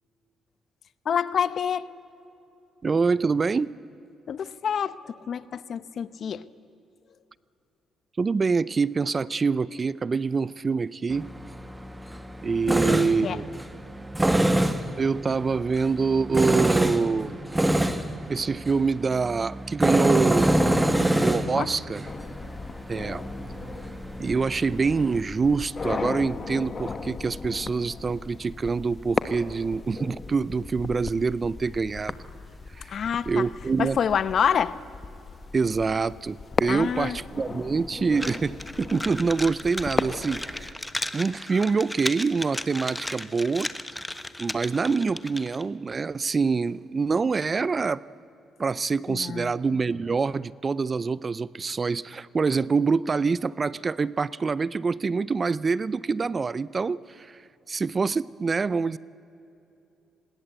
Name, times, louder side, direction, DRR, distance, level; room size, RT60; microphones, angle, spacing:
voice 1, 1.1-1.9 4.3-6.5 12.7-13.4 21.5-21.7 32.9-33.4 33.8-34.8 36.7-37.2 49.1-49.5, left 7 dB, 55° left, 0.8 m, -27 dB
voice 2, 2.8-3.8 8.2-11.3 12.4-13.4 15.0-17.4 18.3-20.5 21.2-22.1 22.9-23.2 24.2-32.2 32.7-33.0 33.3-34.0 35.5-40.7 41.1-43.7 44.4-48.0 48.6-57.4 57.7-59.0, right 4 dB, 35° right, 0.5 m, -25 dB
Tools, 11.1-25.2, right 1 dB, 10° right, 1.5 m, -26 dB
sound 1, 22.0-40.7, left 4 dB, 35° left, 1.3 m, -36 dB
sound 2, 38.2-45.7, left 1 dB, 10° left, 1.2 m, -35 dB
26.0 x 21.0 x 8.1 m
cardioid pair, 90°, 0 cm